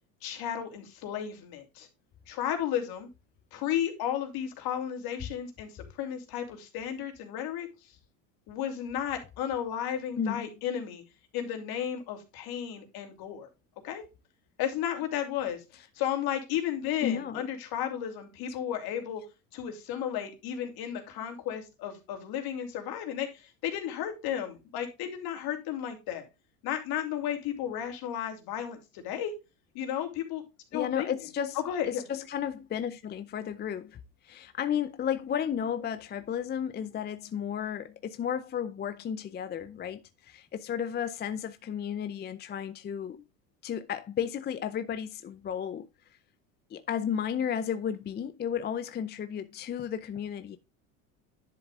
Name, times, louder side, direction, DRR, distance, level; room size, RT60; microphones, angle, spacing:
voice 1, 0.2-1.9 2.3-3.1 3.5-7.7 8.5-11.0 11.3-13.5 13.8-14.0 14.6-19.2 19.5-26.2 26.6-29.3 29.7-30.4 30.7-31.1 31.5-32.0, left 10 dB, 60° left, 2.9 m, -33 dB
voice 2, 10.2-10.5 17.0-17.5 30.7-43.2 43.6-45.9 46.7-50.6, left 8 dB, 25° left, 0.5 m, -33 dB
10.5 x 7.1 x 2.4 m
hypercardioid pair, 90°, 42 cm